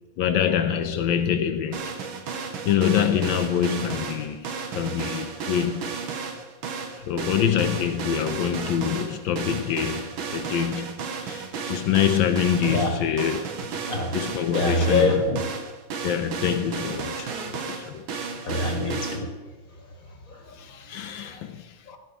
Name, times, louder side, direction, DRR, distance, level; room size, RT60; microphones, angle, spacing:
voice 1, 0.2-1.9 2.6-5.8 7.1-13.4 14.1-15.1 16.0-18.3 20.6-21.7, left 9 dB, 75° left, 8 dB, 1.3 m, -25 dB
sound 1, 1.7-19.2, right 5 dB, 75° right, 1.9 m, -33 dB
voice 2, 14.5-15.4 18.5-19.3 19.8-21.4 21.9-22.0, left 2 dB, 45° left, 2 dB, 1.9 m, -26 dB
15.5 x 6.9 x 4.8 m, 1.3 s
omnidirectional pair, 2.3 m